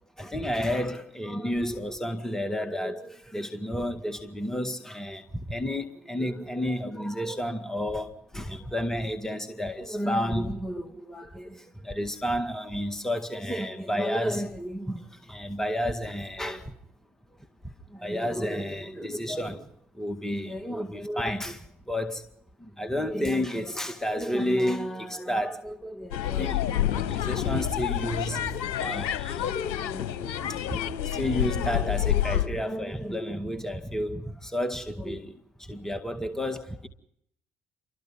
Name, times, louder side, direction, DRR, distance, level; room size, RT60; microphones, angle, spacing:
voice 1, 0.2-16.7 17.9-19.7 20.0-22.2 22.6-28.5 28.8-29.5 29.8-30.8 31.0-35.4 35.7-36.9, equal, 10° left, 2.0 m, -31 dB
sound 1, 26.1-32.5, left 11 dB, 65° left, 1.2 m, -28 dB
29.0 x 25.5 x 3.7 m
figure-of-eight pair, 55°, 6 cm